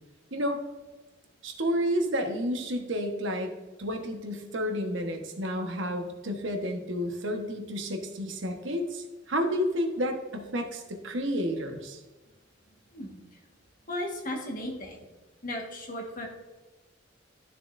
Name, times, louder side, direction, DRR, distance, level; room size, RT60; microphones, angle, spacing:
voice 1, 1.4-3.5 3.8-12.0, equal, 75° right, 4 dB, 1.3 m, -30 dB
voice 2, 13.9-15.1 15.4-16.3, left 1 dB, 45° left, 1 dB, 1.6 m, -35 dB
12.5 x 6.8 x 2.6 m, 1.2 s
head